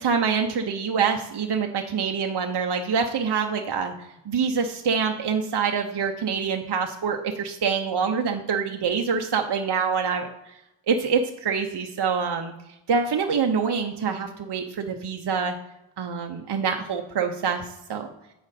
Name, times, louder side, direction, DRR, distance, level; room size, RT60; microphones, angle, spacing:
voice 1, 0.0-3.9 4.3-10.5 10.9-12.5 12.9-15.6 16.0-18.1, right 6 dB, 55° right, 4 dB, 0.7 m, -25 dB
8.7 x 5.1 x 4.1 m, 0.90 s
wide cardioid pair, 75°, 49 cm